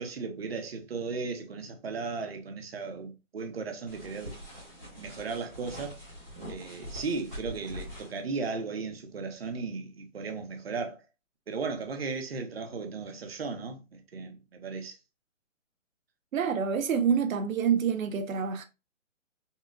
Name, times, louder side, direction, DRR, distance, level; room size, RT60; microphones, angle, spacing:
voice 1, 0.0-4.3 5.0-6.0 6.5-11.0 11.5-15.0, right 4 dB, 50° right, 0.8 m, -36 dB
sound 1, 3.9-8.2, equal, 5° right, 0.9 m, -44 dB
voice 2, 16.3-18.6, right 7 dB, 85° right, 0.6 m, -27 dB
5.5 x 2.4 x 2.4 m
hypercardioid pair, 175°, 39 cm